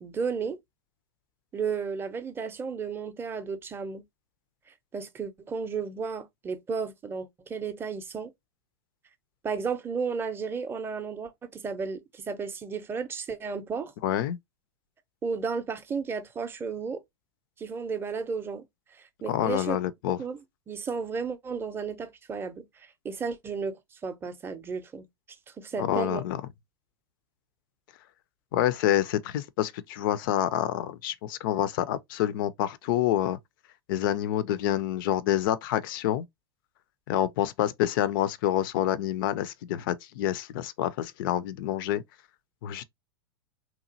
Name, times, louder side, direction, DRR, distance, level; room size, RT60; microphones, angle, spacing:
voice 1, 0.0-0.6 1.5-4.0 4.9-8.3 9.4-13.9 15.2-17.0 17.6-18.6 19.0-19.8 20.2-20.4 20.7-22.7 23.0-23.8 24.0-25.1 25.6-26.2, right 5 dB, 15° right, 0.5 m, -33 dB
voice 2, 14.0-14.4 19.3-20.2 25.8-26.4 28.5-33.4 33.9-36.2 37.1-42.0 42.6-42.8, left 12 dB, 60° left, 0.4 m, -27 dB
2.9 x 2.3 x 2.6 m
hypercardioid pair, 105°, 13 cm